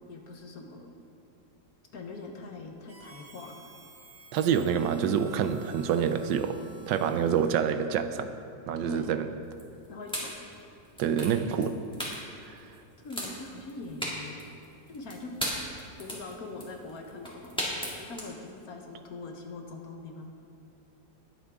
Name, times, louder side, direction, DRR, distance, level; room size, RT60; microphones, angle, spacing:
voice 1, 0.1-0.9 1.9-3.5 8.9-9.1 9.9-10.3 13.0-14.4 14.9-15.3 16.0-20.3, left 3 dB, 55° left, 3 dB, 1.5 m, -42 dB
Harmonica, 2.9-7.9, right 2 dB, 50° right, 2.6 m, -53 dB
voice 2, 4.3-6.6 6.9-8.3 8.7-9.3 11.0-11.8 12.5-12.6, right 8 dB, 80° right, 10 dB, 1.3 m, -27 dB
sound 1, 9.5-18.3, equal, 5° left, 1.9 m, -37 dB
20.0 x 8.0 x 3.6 m, 2.6 s
omnidirectional pair, 1.9 m